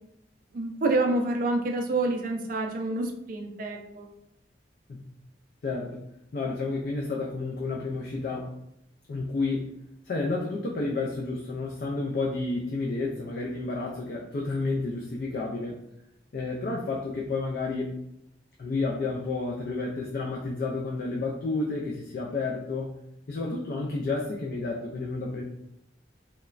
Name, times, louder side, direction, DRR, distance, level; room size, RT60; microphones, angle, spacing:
voice 1, 0.5-4.1, right 2 dB, 45° right, 3 dB, 0.4 m, -28 dB
voice 2, 5.6-6.0 6.3-8.5 9.1-9.7 10.0-15.8 16.3-18.0 18.6-23.0 23.3-25.4, left 3 dB, 50° left, -2 dB, 0.3 m, -31 dB
3.0 x 2.1 x 2.4 m, 0.81 s
head